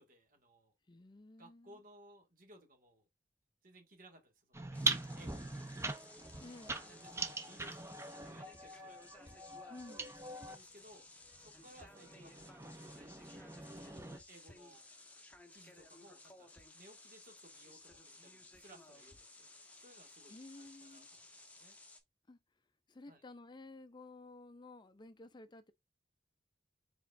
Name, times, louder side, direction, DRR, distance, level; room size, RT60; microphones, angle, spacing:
voice 1, 0.0-0.7 1.4-3.1 3.6-5.9 6.7-9.6 10.3-11.1 11.4-13.1 13.6-14.9 15.5-21.8 23.1-23.2, right 1 dB, 50° right, 1.9 m, -62 dB
voice 2, 0.9-1.8 6.4-6.9 9.7-10.1 19.6-19.7 20.3-21.1 22.3-22.4 22.9-25.7, left 2 dB, 25° left, 0.4 m, -53 dB
sound 1, 4.5-10.6 11.5-14.2, right 3 dB, 15° right, 0.6 m, -42 dB
recording the sound of hailstones, 4.7-22.0, left 2 dB, 10° left, 0.9 m, -58 dB
4.8 x 4.3 x 2.5 m
head